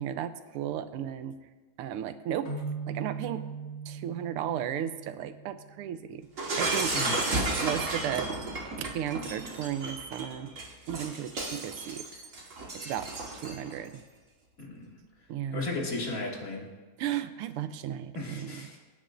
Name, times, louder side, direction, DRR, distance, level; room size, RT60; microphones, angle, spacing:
voice 1, 0.0-1.5 1.8-2.5 2.9-3.5 3.9-6.3 6.6-7.0 7.6-8.3 8.8-10.5 10.9-12.0 12.7-13.1 13.4-14.0 15.3-15.6 17.0-18.8, right 10 dB, 85° right, 11 dB, 1.6 m, -34 dB
sound 1, 2.5-6.0, right 5 dB, 65° left, 2.7 m, -39 dB
Shatter, 6.4-13.7, right 2 dB, 40° right, 1.8 m, -33 dB
voice 2, 14.6-14.9 15.5-16.7 18.1-18.8, left 2 dB, 40° left, -3 dB, 2.4 m, -35 dB
25.5 x 9.6 x 2.5 m, 1.3 s
omnidirectional pair, 2.4 m